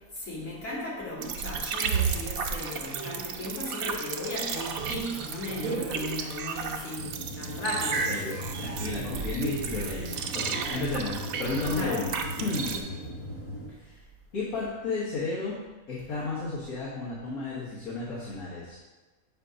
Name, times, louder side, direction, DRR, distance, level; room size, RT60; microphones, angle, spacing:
voice 1, 0.1-8.1 11.7-12.1 12.7-12.8, left 2 dB, 55° left, -7 dB, 2.1 m, -36 dB
sound 1, 1.2-12.8, right 6 dB, 75° right, 1.0 m, -33 dB
sound 2, 7.0-13.7, left 1 dB, 15° left, 0.5 m, -39 dB
voice 2, 7.9-12.8 13.8-14.0 14.3-15.5 15.9-18.8, left 3 dB, 85° left, -8 dB, 1.7 m, -33 dB
7.4 x 2.7 x 5.0 m, 1.2 s
omnidirectional pair, 1.5 m